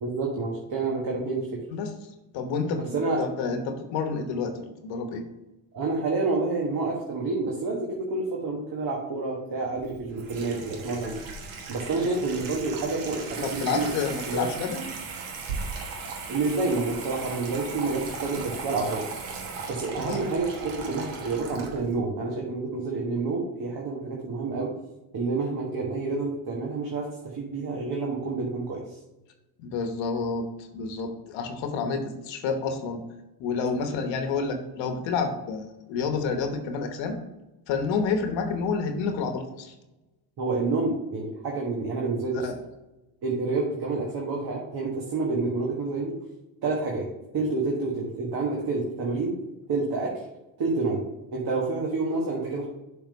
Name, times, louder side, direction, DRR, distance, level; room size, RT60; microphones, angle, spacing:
voice 1, 0.0-1.6 2.8-3.2 5.7-11.1 11.7-13.9 14.3-14.4 16.3-19.1 19.7-24.7 25.1-28.8 40.4-42.5 43.2-46.2 46.6-47.1 47.3-49.3 49.7-50.2 50.6-51.0 51.3-52.7, right 3 dB, 55° right, -2 dB, 1.6 m, -28 dB
voice 2, 2.3-5.2 11.9-12.0 13.4-14.8 20.0-20.2 29.6-30.5 30.7-33.0 33.4-37.2 37.7-39.7 42.4-42.5, left 5 dB, 75° left, 6 dB, 1.1 m, -29 dB
Water tap faucet / Sink (filling or washing), 9.8-22.0, right 4 dB, 85° right, 1.3 m, -37 dB
7.1 x 3.7 x 5.2 m, 0.98 s
supercardioid pair, 70°, 45 cm